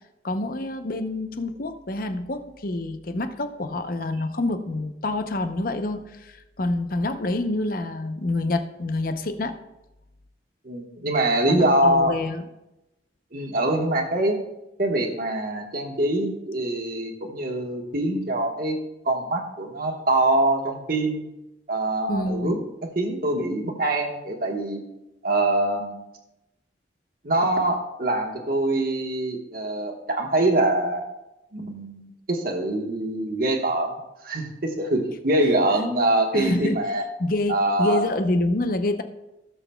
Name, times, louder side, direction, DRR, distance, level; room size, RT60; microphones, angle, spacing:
voice 1, 0.2-9.6 11.5-12.4 22.1-22.6 36.3-36.8 37.2-39.0, left 2 dB, 55° left, 8 dB, 0.7 m, -27 dB
voice 2, 10.6-12.1 13.3-14.4 14.8-18.8 19.0-21.3 21.7-24.8 25.2-26.0 27.2-31.1 31.5-37.0 37.5-38.0, right 1 dB, 55° right, 2 dB, 1.4 m, -24 dB
17.0 x 7.0 x 2.3 m, 0.93 s
head